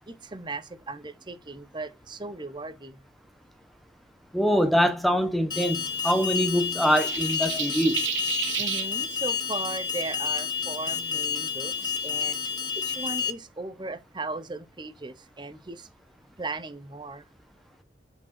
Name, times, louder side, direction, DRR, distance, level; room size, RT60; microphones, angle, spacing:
voice 1, 0.1-3.0 8.6-12.4 12.8-15.9 16.4-17.2, right 3 dB, 25° right, 0.8 m, -37 dB
voice 2, 4.3-8.0, equal, ahead, 1.1 m, -24 dB
Alarm, 5.5-13.3, left 7 dB, 25° left, 0.9 m, -30 dB
sound 1, 6.9-8.9, right 11 dB, 75° right, 0.8 m, -31 dB
6.3 x 5.0 x 5.9 m
head